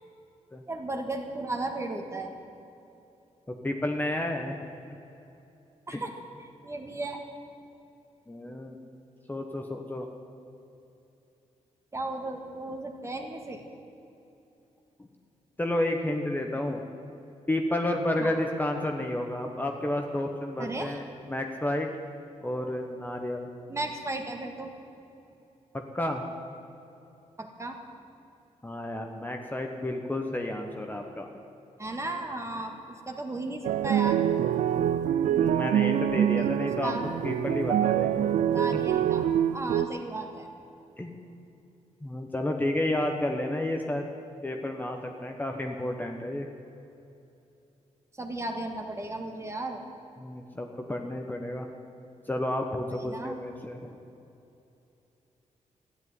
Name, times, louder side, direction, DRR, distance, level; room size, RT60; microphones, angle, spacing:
voice 1, 0.7-2.3 5.9-6.1 6.4-7.2 11.9-13.6 18.2-18.4 20.6-21.0 23.7-24.7 27.4-27.8 31.8-32.8 33.1-34.3 36.8-37.1 38.5-39.2 39.5-40.5 48.2-49.8 52.9-53.4, right 2 dB, 25° right, 3 dB, 1.8 m, -35 dB
voice 2, 3.5-4.6 5.9-6.0 8.3-8.8 9.3-10.1 15.6-16.8 17.5-21.9 22.4-23.5 25.9-26.2 28.6-31.3 35.3-37.0 37.2-38.3 41.0-41.1 42.0-44.1 44.4-46.5 50.2-51.7 52.3-53.9, left 1 dB, 15° left, 3 dB, 1.1 m, -31 dB
sound 1, 33.6-39.9, right 10 dB, 80° right, 0.4 m, -25 dB
13.0 x 10.0 x 9.6 m, 2.8 s
cardioid pair, 95°, 12 cm